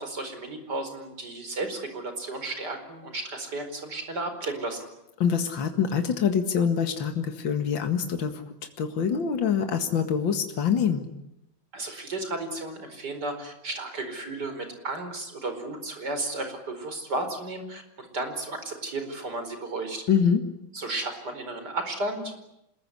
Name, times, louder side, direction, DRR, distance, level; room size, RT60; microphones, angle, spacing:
voice 1, 0.0-4.9 11.7-20.0 20.7-22.3, right 2 dB, 55° right, 7 dB, 5.3 m, -33 dB
voice 2, 5.2-8.4 8.8-11.1 20.1-20.4, left 7 dB, 70° left, 6 dB, 2.6 m, -25 dB
27.0 x 21.5 x 9.9 m, 0.83 s
omnidirectional pair, 2.2 m